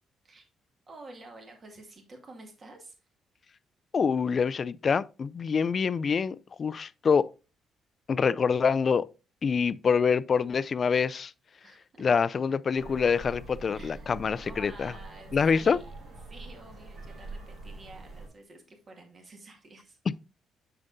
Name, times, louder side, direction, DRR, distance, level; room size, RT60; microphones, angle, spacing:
voice 1, 0.9-2.9 11.6-12.2 13.7-20.0, right 2 dB, 40° right, 2.1 m, -50 dB
voice 2, 3.9-7.3 8.1-9.1 9.4-11.3 12.0-14.9 15.3-15.8, left 6 dB, 45° left, 0.3 m, -26 dB
sound 1, 12.7-18.3, right 2 dB, 70° right, 3.4 m, -44 dB
7.1 x 6.8 x 2.6 m
cardioid pair, 90°, 0 cm